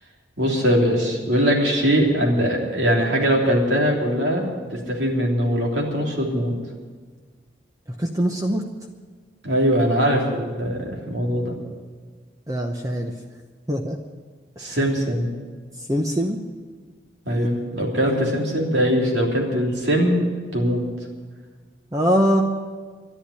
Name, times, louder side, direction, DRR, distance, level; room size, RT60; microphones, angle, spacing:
voice 1, 0.4-4.4 4.7-6.5 9.4-11.6 14.6-15.3 17.2-20.2 20.5-20.8, equal, 70° right, -1 dB, 3.3 m, -21 dB
voice 2, 7.9-8.7 12.5-13.2 13.7-14.0 14.6-14.9 15.7-16.4 17.3-17.5 18.1-18.2 21.9-22.4, equal, 20° right, 2 dB, 0.8 m, -23 dB
12.0 x 11.5 x 9.8 m, 1.5 s
head